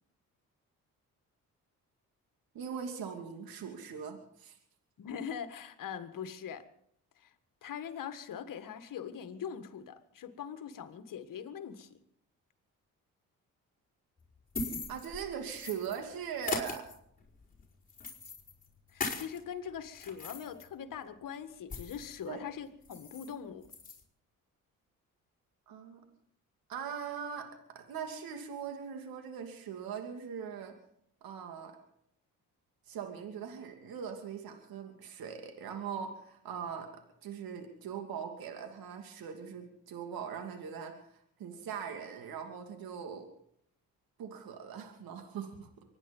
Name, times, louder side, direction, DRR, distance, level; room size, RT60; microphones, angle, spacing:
voice 1, 2.5-4.6 14.9-16.8 22.3-22.4 25.7-26.0 26.7-27.5 27.7-30.7 31.2-31.8 32.9-36.9 37.2-43.3 44.2-45.7, right 7 dB, 75° right, 5 dB, 2.8 m, -41 dB
voice 2, 5.0-6.7 7.2-7.3 7.6-12.0 18.9-23.7, left 8 dB, 60° left, 10 dB, 1.7 m, -42 dB
sound 1, 14.2-16.0 16.4-19.4 19.8-22.1 22.5-22.6 22.8-23.3 23.6-24.0, left 3 dB, 25° left, 4.9 m, -40 dB
24.5 x 10.5 x 5.5 m, 0.71 s
supercardioid pair, 65°, 36 cm